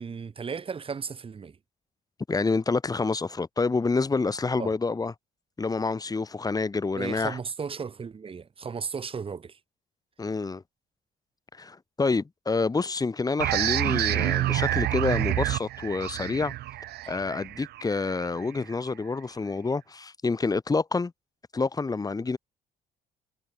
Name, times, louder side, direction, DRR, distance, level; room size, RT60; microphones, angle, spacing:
voice 1, 0.0-1.6 4.6-4.7 7.0-9.6, right 5 dB, 30° right, 5.9 m, -35 dB
voice 2, 2.3-5.1 5.6-7.4 10.2-10.6 11.5-16.5 17.1-21.1 21.5-22.4, left 4 dB, 20° left, 6.2 m, -28 dB
sound 1, 13.4-18.7, right 15 dB, 70° right, 2.1 m, -28 dB
cardioid pair, 110°, 17 cm